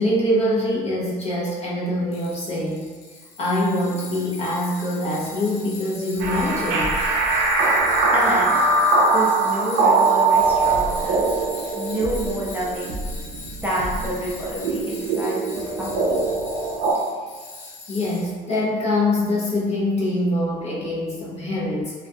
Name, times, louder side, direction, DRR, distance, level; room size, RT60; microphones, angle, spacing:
voice 1, 0.0-2.9 3.4-7.0 16.9-17.0 17.8-22.1, left 1 dB, 35° left, -5 dB, 0.6 m, -24 dB
Tools, 2.1-18.6, left 3 dB, 80° left, 0.6 m, -40 dB
sound 1, 6.2-16.9, right 3 dB, 75° right, 0.5 m, -21 dB
voice 2, 8.1-8.7 9.1-11.3 11.7-13.0 13.6-16.2, equal, 10° right, -7 dB, 0.6 m, -28 dB
2.3 x 2.2 x 2.6 m, 1.5 s
cardioid pair, 120°, 19 cm